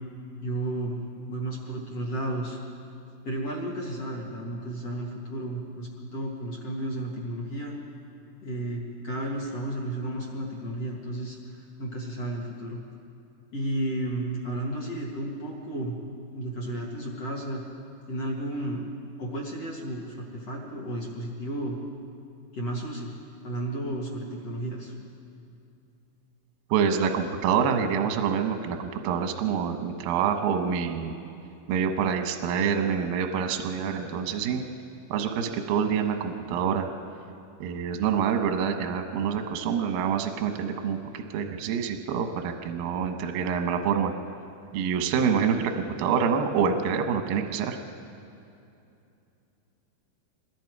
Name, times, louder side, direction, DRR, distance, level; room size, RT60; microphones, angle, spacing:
voice 1, 0.4-1.0 1.3-2.6 3.2-7.8 8.4-12.8 13.5-15.9 16.3-17.6 18.1-18.9 19.2-21.8 22.5-23.1 23.4-24.9, right 1 dB, 45° left, -3 dB, 2.1 m, -33 dB
voice 2, 26.7-31.1 31.7-34.6 35.1-36.9 37.6-44.1 44.7-45.7 46.0-47.8, right 7 dB, 75° right, 5 dB, 2.2 m, -26 dB
26.0 x 21.0 x 4.8 m, 2.6 s
omnidirectional pair, 5.9 m